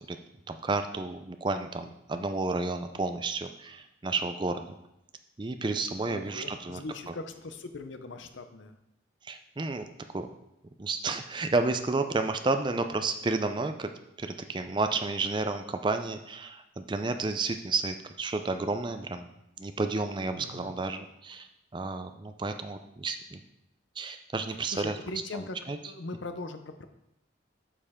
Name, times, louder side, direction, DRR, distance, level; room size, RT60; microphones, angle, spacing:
voice 1, 0.5-4.7 5.4-7.1 9.2-9.9 10.1-10.3 10.8-13.9 14.2-19.3 19.6-21.5 21.7-23.4 24.0-25.0 25.3-25.8, right 3 dB, 25° right, 8 dB, 0.4 m, -31 dB
voice 2, 6.1-8.8 20.4-20.8 24.7-25.6 25.8-26.9, left 2 dB, 75° left, 8 dB, 0.7 m, -40 dB
8.3 x 5.5 x 3.6 m, 0.83 s
head